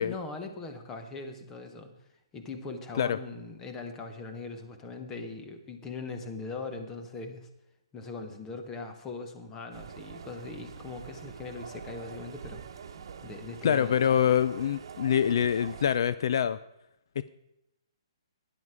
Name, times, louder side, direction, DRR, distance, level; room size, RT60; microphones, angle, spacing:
voice 1, 0.0-1.9 2.3-7.5 7.9-12.6 13.2-14.3, left 3 dB, 15° left, 6 dB, 1.0 m, -40 dB
sound 1, 9.7-16.0, right 6 dB, 55° right, 1.1 m, -45 dB
voice 2, 13.6-16.6 17.2-17.3, left 9 dB, 55° left, 15 dB, 0.4 m, -25 dB
12.0 x 10.0 x 4.9 m, 0.87 s
hypercardioid pair, 165°, 3 cm